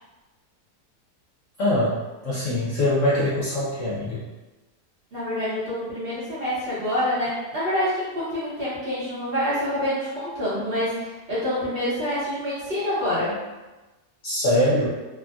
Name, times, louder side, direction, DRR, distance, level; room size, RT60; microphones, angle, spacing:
voice 1, 1.6-4.3 14.2-14.9, left 1 dB, 65° left, -8 dB, 0.8 m, -23 dB
voice 2, 5.1-13.4, left 1 dB, 45° right, -10 dB, 0.9 m, -27 dB
3.4 x 2.1 x 2.4 m, 1.1 s
omnidirectional pair, 1.7 m